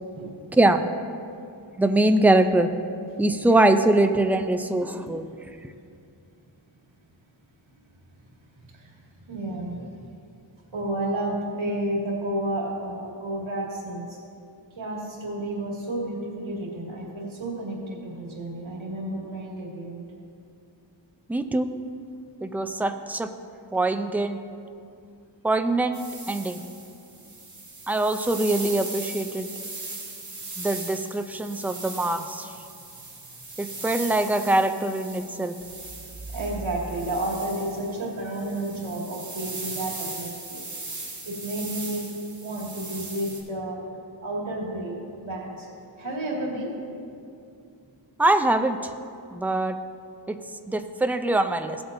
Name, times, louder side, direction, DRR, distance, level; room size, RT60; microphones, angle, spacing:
voice 1, 0.1-0.5 8.7-9.0 9.3-10.1 10.7-14.2 14.8-20.1 36.1-40.6 41.3-42.0 42.4-43.8 44.2-45.0 45.2-45.7 46.0-46.7, right 1 dB, 85° right, -4 dB, 2.2 m, -31 dB
voice 2, 1.8-2.7 3.2-5.2 21.3-21.7 22.4-23.3 23.7-24.4 25.4-26.0 26.3-26.6 27.9-29.5 30.6-32.5 33.6-35.5 48.2-48.9 49.3-49.7 50.3-50.4 50.7-51.8, right 2 dB, 5° right, 7 dB, 0.3 m, -23 dB
sound 1, 25.9-43.4, right 3 dB, 40° right, 1.9 m, -39 dB
16.0 x 7.9 x 2.6 m, 2.4 s
wide cardioid pair, 115°, 45 cm